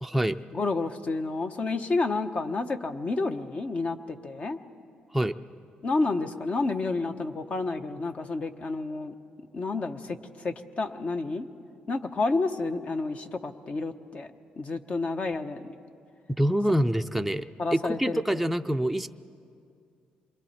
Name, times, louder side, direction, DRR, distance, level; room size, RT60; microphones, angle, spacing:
voice 1, 0.0-0.4 5.1-5.3 16.4-19.1, right 1 dB, ahead, 6 dB, 0.5 m, -26 dB
voice 2, 0.5-4.6 5.8-9.1 9.5-11.5 11.9-14.3 14.6-15.8 17.6-18.2, left 3 dB, 45° left, 8 dB, 1.0 m, -30 dB
27.0 x 23.0 x 4.3 m, 2.4 s
cardioid pair, 80°, 3 cm